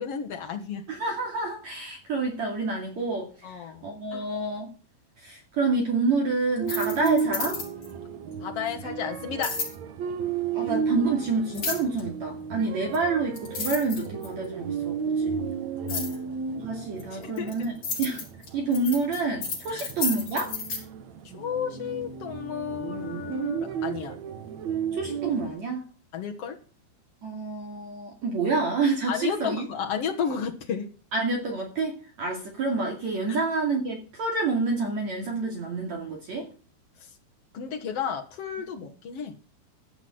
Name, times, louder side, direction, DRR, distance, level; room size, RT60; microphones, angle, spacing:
voice 1, 0.0-0.8 3.4-3.9 4.1-4.3 8.4-9.6 15.9-16.3 17.1-17.6 19.7-19.9 21.3-24.2 26.1-26.6 29.1-30.9 33.3-33.4 37.5-39.3, left 7 dB, 75° left, 3 dB, 1.4 m, -32 dB
voice 2, 0.9-4.7 5.2-7.6 10.5-15.4 16.6-17.7 18.0-18.3 18.5-20.5 24.9-25.9 27.2-29.7 31.1-36.5, right 3 dB, 45° right, 0 dB, 3.4 m, -28 dB
sound 1, 6.6-7.9 9.4-9.7 11.5-12.0 12.9-13.0 13.4-14.5 15.9-16.2 17.0-20.8, left 5 dB, 50° left, 6.4 m, -32 dB
sound 2, 6.6-25.5, right 6 dB, 65° right, 1.8 m, -33 dB
15.5 x 6.1 x 7.9 m, 0.38 s
omnidirectional pair, 4.8 m